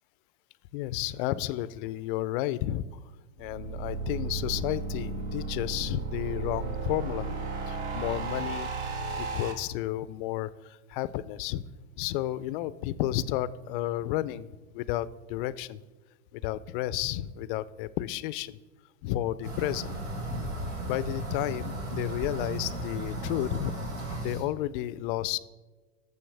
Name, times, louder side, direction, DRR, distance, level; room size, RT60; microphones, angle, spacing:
voice 1, 0.7-2.8 3.4-7.3 7.7-8.7 9.2-11.6 12.0-15.8 16.3-18.6 19.0-19.9 20.8-23.7 24.2-25.4, left 14 dB, 45° left, 17 dB, 0.5 m, -32 dB
sound 1, 3.4-9.5, right 4 dB, 60° right, 1.9 m, -34 dB
sound 2, 19.4-24.5, right 1 dB, 85° right, 3.9 m, -35 dB
17.5 x 6.9 x 3.4 m, 1.3 s
hypercardioid pair, 120°, 37 cm